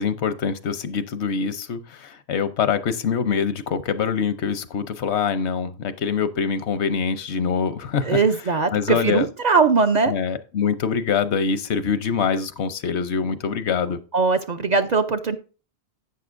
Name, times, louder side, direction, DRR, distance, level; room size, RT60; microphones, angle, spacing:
voice 1, 0.0-8.2 8.7-9.3 10.1-14.0, left 6 dB, 80° left, 1.0 m, -24 dB
voice 2, 8.0-10.1 14.1-15.4, right 4 dB, 50° right, 0.5 m, -20 dB
11.0 x 8.1 x 2.5 m
omnidirectional pair, 1.1 m